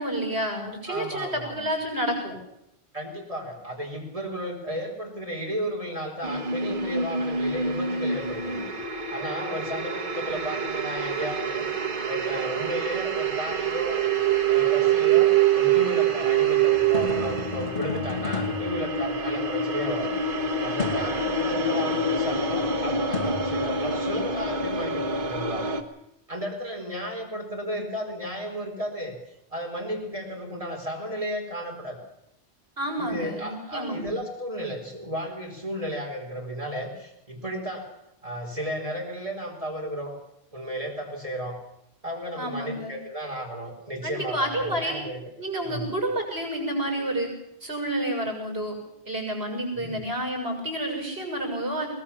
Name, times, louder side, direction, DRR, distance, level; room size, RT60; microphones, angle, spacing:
voice 1, 0.0-2.4 32.8-34.0 42.4-43.0 44.0-44.9 45.4-47.3 47.6-48.8 49.1-51.9, right 1 dB, 75° right, 2 dB, 7.0 m, -29 dB
voice 2, 0.9-1.7 2.9-8.6 9.1-11.7 12.1-14.1 14.5-20.1 20.6-25.7 26.3-29.2 29.5-32.0 33.0-37.9 38.2-40.2 40.5-41.6 42.0-45.2 45.6-45.9 49.7-50.0, equal, 35° right, 1 dB, 4.6 m, -33 dB
sound 1, 6.2-25.8, right 6 dB, 55° right, 1.8 m, -26 dB
sound 2, 16.7-19.6 20.8-21.2 23.1-24.2, left 4 dB, 60° left, 3.0 m, -34 dB
21.5 x 19.0 x 7.2 m, 0.79 s
omnidirectional pair, 1.1 m